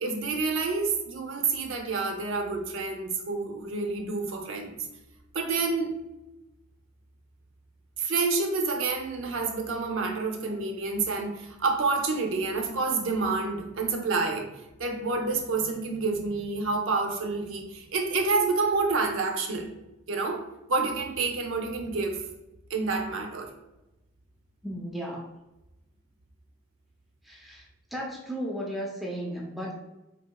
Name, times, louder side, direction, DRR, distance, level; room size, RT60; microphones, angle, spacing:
voice 1, 0.0-4.7 5.3-6.0 8.0-14.5 14.8-19.7 20.1-20.4 20.7-22.2 22.7-23.5, right 4 dB, 85° right, 3 dB, 0.6 m, -28 dB
voice 2, 24.6-25.2 27.2-27.6 27.9-29.8, equal, ahead, -3 dB, 0.5 m, -34 dB
4.0 x 2.8 x 2.2 m, 0.96 s
head